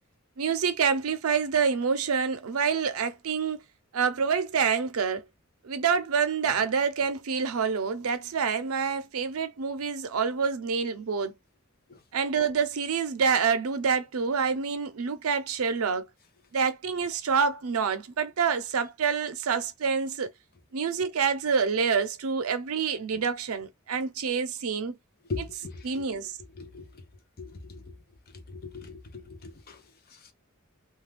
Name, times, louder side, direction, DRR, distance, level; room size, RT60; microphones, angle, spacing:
voice 1, 0.4-3.6 3.9-5.2 5.6-11.3 12.1-16.0 16.5-20.3 20.7-25.0 25.8-26.4, right 6 dB, 85° right, 0.6 m, -27 dB
voice 2, 25.3-26.0 26.6-27.1 27.4-27.9 28.3-29.8 30.1-30.3, left 3 dB, 45° left, 0.6 m, -40 dB
2.4 x 2.3 x 3.3 m
head